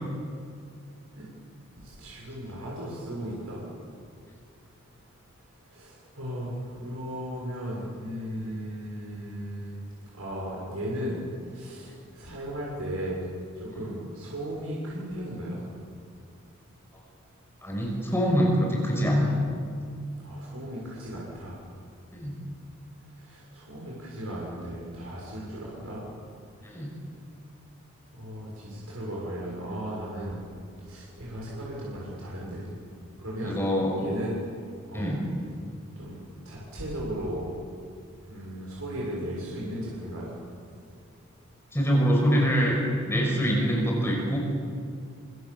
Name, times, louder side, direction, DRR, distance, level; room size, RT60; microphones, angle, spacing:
voice 1, 1.8-3.6 5.7-9.8 10.1-11.2 11.5-13.2 13.6-15.6 20.2-21.6 23.2-26.1 28.1-30.5 30.8-32.7 33.2-33.6 33.9-34.3 34.9-35.1 36.0-36.2 36.5-37.5 38.3-40.3, equal, 90° right, -5 dB, 6.9 m, -36 dB
voice 2, 17.6-19.3 22.1-22.4 26.6-26.9 33.4-33.9 34.9-35.2 41.7-42.8 43.0-44.4, equal, 10° left, -2 dB, 6.4 m, -24 dB
27.0 x 26.0 x 7.4 m, 2.3 s
head